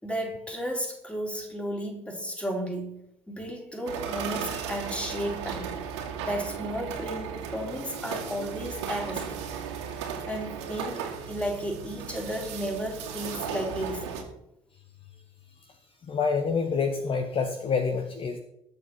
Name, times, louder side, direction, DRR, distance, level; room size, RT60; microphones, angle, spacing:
voice 1, 0.0-3.0 3.3-5.8 6.2-9.6 10.3-14.3, equal, 10° left, 1 dB, 4.0 m, -33 dB
sound 1, 3.8-14.2, right 7 dB, 70° right, 2.5 m, -36 dB
voice 2, 16.1-18.4, left 5 dB, 35° left, 7 dB, 1.4 m, -27 dB
19.5 x 7.1 x 4.6 m, 0.81 s
figure-of-eight pair, 55°, 15 cm